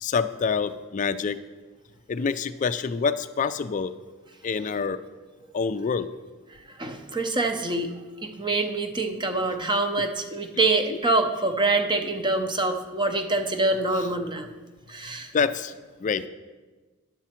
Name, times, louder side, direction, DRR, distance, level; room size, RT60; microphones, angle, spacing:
voice 1, 0.0-1.4 2.1-3.9 4.4-5.0 5.5-6.1 10.9-11.0 15.3-16.3, left 5 dB, 35° left, 12 dB, 0.3 m, -26 dB
voice 2, 6.8-7.9 8.2-14.5 14.9-15.3, right 2 dB, 20° right, 6 dB, 0.6 m, -25 dB
9.6 x 7.2 x 4.3 m, 1.3 s
head